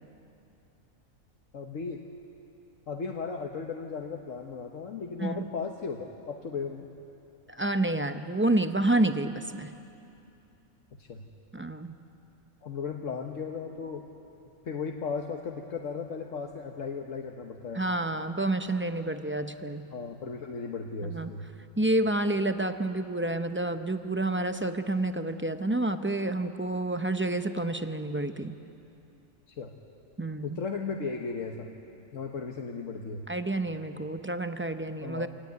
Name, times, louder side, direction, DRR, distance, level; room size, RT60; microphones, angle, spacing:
voice 1, 1.5-2.0 2.9-6.9 11.0-11.3 12.6-14.0 14.6-17.8 19.9-21.5 29.5-29.7 30.4-31.7 32.1-33.3 35.0-35.3, left 5 dB, 70° left, 2 dB, 1.5 m, -36 dB
voice 2, 7.5-9.7 11.5-12.0 17.7-19.9 21.0-21.3 21.8-28.5 30.2-30.6 33.3-35.3, right 2 dB, 20° right, 8 dB, 0.4 m, -29 dB
25.5 x 17.5 x 9.4 m, 2.7 s
omnidirectional pair, 1.4 m